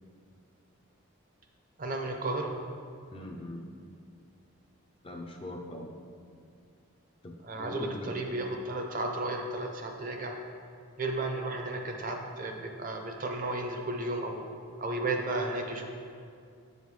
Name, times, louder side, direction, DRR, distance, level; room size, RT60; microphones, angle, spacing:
voice 1, 1.8-2.5 7.4-10.3 11.0-14.5 14.8-15.9, right 2 dB, 40° right, 3 dB, 0.5 m, -33 dB
voice 2, 3.1-3.6 5.0-5.9 7.2-8.1, left 1 dB, 25° left, 2 dB, 0.4 m, -41 dB
6.7 x 5.5 x 3.2 m, 2.3 s
head